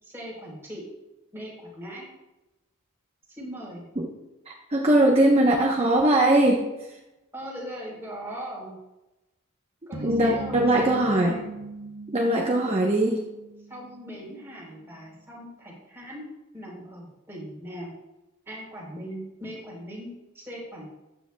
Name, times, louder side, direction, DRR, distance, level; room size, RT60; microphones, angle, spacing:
voice 1, 0.0-0.8 1.3-2.1 3.3-3.9 7.3-8.7 9.9-11.5 13.7-16.2 16.5-17.9 18.5-20.9, equal, 10° right, -4 dB, 3.8 m, -39 dB
voice 2, 4.5-6.6 10.0-11.4 12.1-13.2, right 1 dB, 30° right, -1 dB, 1.0 m, -21 dB
sound 1, 9.9-14.3, right 2 dB, 70° right, 1.2 m, -38 dB
13.5 x 9.8 x 2.3 m, 1.0 s
head